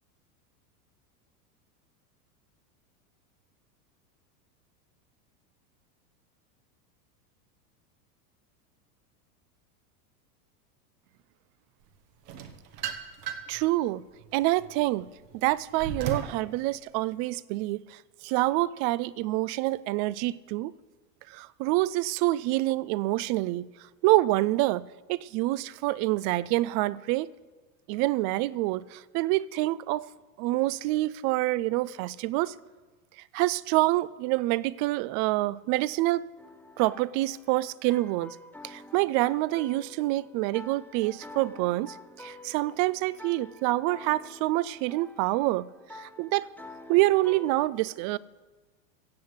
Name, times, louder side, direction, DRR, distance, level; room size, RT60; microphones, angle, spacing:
sound 1, 12.3-13.6 14.1-16.4, right 7 dB, 80° right, 1.8 m, -35 dB
voice 1, 13.5-14.0 14.3-15.1 15.4-20.7 21.3-23.7 24.0-24.8 25.1-27.3 27.9-30.1 30.4-32.5 33.3-36.3 36.8-38.4 38.6-45.7 45.9-46.5 46.9-48.2, right 18 dB, 40° right, 0.4 m, -27 dB
sound 2, 36.4-47.6, left 2 dB, 5° left, 1.4 m, -48 dB
15.5 x 7.8 x 8.1 m
supercardioid pair, 120°, 48 cm